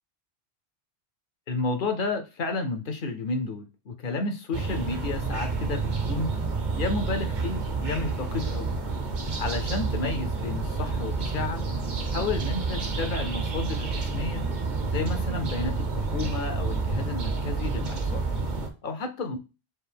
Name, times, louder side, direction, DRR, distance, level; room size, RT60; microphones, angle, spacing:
voice 1, 1.5-6.3 6.8-8.7 9.4-11.6 12.1-14.5 14.9-18.2 18.8-19.4, left 3 dB, 60° left, 7 dB, 0.7 m, -31 dB
sound 1, 4.5-18.7, right 4 dB, 50° right, 0.8 m, -29 dB
4.6 x 2.6 x 3.3 m, 0.30 s
omnidirectional pair, 1.1 m